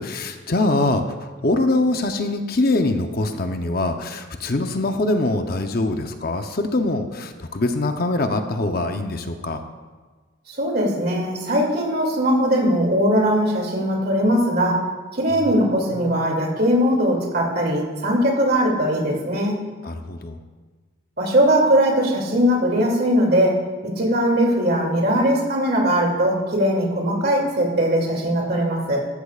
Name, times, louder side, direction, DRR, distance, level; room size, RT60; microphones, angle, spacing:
voice 1, 0.0-9.6 15.4-16.2 19.8-20.4, left 2 dB, 50° left, 6 dB, 0.7 m, -23 dB
voice 2, 10.5-14.8 15.1-19.6 21.2-23.6 24.0-29.1, equal, 50° right, -1 dB, 2.6 m, -20 dB
15.0 x 13.0 x 2.4 m, 1.4 s
head